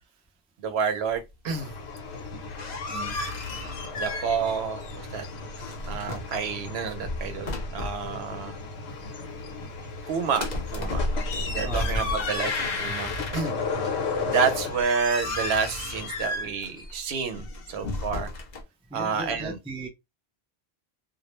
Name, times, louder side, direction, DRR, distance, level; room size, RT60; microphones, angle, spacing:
voice 1, 0.6-1.7 4.0-5.3 5.9-8.5 10.1-11.0 11.3-12.5 12.8-13.6 14.3-18.3 18.9-19.6, right 6 dB, 80° right, 0.9 m, -29 dB
sound 1, 1.5-14.8, left 4 dB, 85° left, 1.0 m, -36 dB
sound 2, 2.3-4.6 4.8-6.4 6.9-8.1 10.3-13.7 14.2-18.6, left 2 dB, 50° left, 0.6 m, -32 dB
voice 2, 11.4-11.9 18.9-19.9, right 1 dB, 10° right, 0.4 m, -38 dB
2.4 x 2.0 x 3.0 m
omnidirectional pair, 1.1 m